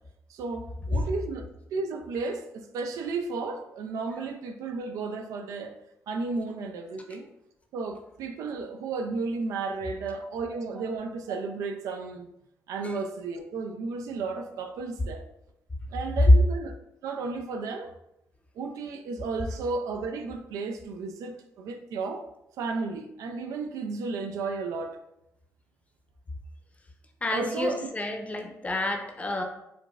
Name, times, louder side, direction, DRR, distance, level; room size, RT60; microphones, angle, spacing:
voice 1, 0.3-1.5 1.7-5.7 6.1-7.3 7.7-12.3 12.7-15.2 15.9-16.7 17.0-17.9 18.6-22.2 22.6-25.0 27.3-27.9, right 4 dB, 80° right, 5 dB, 0.3 m, -33 dB
voice 2, 27.2-29.4, left 2 dB, 25° left, 3 dB, 0.6 m, -31 dB
4.8 x 2.1 x 2.3 m, 0.84 s
supercardioid pair, 65°, 6 cm